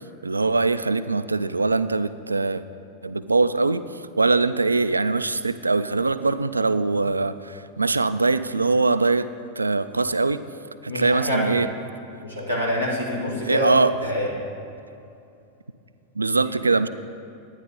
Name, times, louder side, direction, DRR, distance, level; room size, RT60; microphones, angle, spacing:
voice 1, 0.2-2.6 3.0-3.8 4.2-9.3 9.6-10.4 10.8-11.7 13.4-13.9 16.2-16.9, right 3 dB, 80° right, 13 dB, 0.3 m, -22 dB
voice 2, 10.9-11.6 12.2-13.7 14.0-14.3, left 1 dB, 90° left, -5 dB, 2.1 m, -26 dB
10.5 x 9.8 x 3.8 m, 2.6 s
figure-of-eight pair, 90°, 0 cm